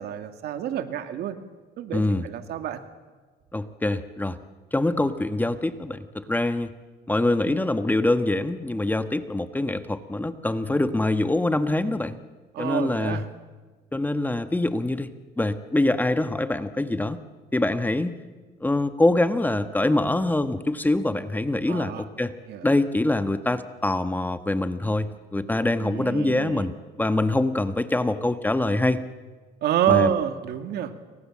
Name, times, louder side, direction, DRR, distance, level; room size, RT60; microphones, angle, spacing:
voice 1, 0.0-1.4 1.8-2.8 7.4-7.6 12.5-13.2 21.7-22.1 22.5-22.7 25.8-26.7 29.6-30.9, right 10 dB, 75° right, 8 dB, 2.4 m, -27 dB
voice 2, 1.9-2.3 3.5-4.4 4.7-6.7 7.1-12.2 12.6-13.2 13.9-17.2 17.5-18.2 18.6-22.3 22.6-29.0 29.9-30.1, left 2 dB, 10° left, 10 dB, 1.4 m, -24 dB
29.0 x 25.0 x 7.5 m, 1.4 s
cardioid pair, 110°, 17 cm